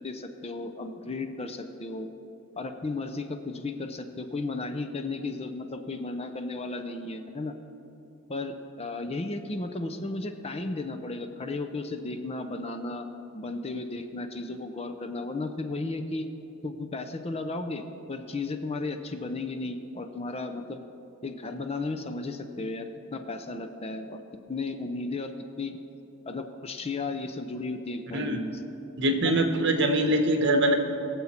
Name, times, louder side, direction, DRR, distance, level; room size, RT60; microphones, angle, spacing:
voice 1, 0.0-2.1 2.6-7.5 8.3-13.1 13.3-16.3 16.6-20.8 21.2-24.2 24.5-25.3 25.6-25.8 26.3-28.6 29.2-29.4, left 3 dB, 30° left, 7 dB, 0.6 m, -34 dB
voice 2, 29.0-30.7, right 1 dB, 55° right, 5 dB, 1.2 m, -23 dB
21.0 x 7.2 x 4.4 m, 2.9 s
head